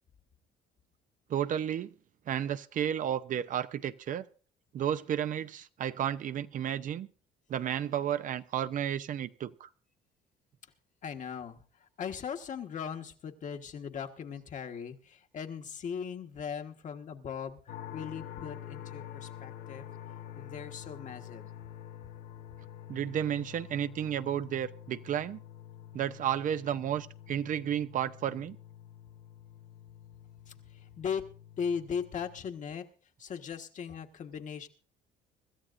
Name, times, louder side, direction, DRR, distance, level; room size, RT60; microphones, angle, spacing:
voice 1, 1.3-1.9 2.3-4.3 4.7-7.1 7.5-9.7 22.9-25.4 25.9-28.6, right 10 dB, 50° right, 0.6 m, -32 dB
voice 2, 11.0-17.6 17.9-19.9 20.4-21.5 30.7-31.3 31.6-32.9 33.2-34.7, left 7 dB, 50° left, 1.4 m, -38 dB
sound 1, 17.7-32.5, left 11 dB, 65° left, 1.2 m, -47 dB
25.0 x 13.5 x 2.6 m
cardioid pair, 110°, 17 cm